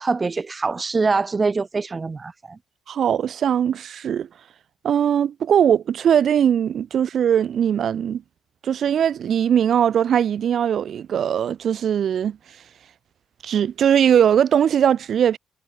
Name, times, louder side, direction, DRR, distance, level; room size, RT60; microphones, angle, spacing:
voice 1, 0.0-2.6, right 4 dB, 30° right, 3.2 m, -24 dB
voice 2, 2.9-4.3 4.8-8.2 8.6-12.4 13.4-15.4, right 9 dB, 60° right, 2.7 m, -20 dB
cardioid pair, 90°, 0 cm